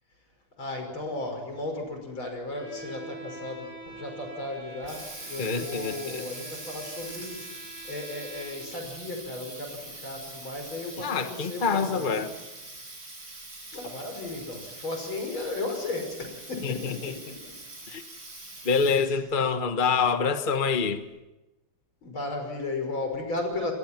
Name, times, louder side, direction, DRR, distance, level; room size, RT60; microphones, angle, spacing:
voice 1, 0.6-7.5 7.9-12.3 13.7-17.4 22.0-23.7, left 2 dB, 65° left, 4 dB, 6.5 m, -35 dB
Bowed string instrument, 2.5-8.8, right 3 dB, 45° left, 8.7 m, -46 dB
Water tap faucet, 4.5-19.2, right 2 dB, 45° right, 7.1 m, -43 dB
voice 2, 5.4-6.3 11.0-12.3 16.6-17.1 17.9-18.0 18.6-21.0, left 5 dB, 30° left, 8 dB, 1.0 m, -26 dB
27.5 x 21.5 x 6.0 m, 1.0 s
omnidirectional pair, 2.4 m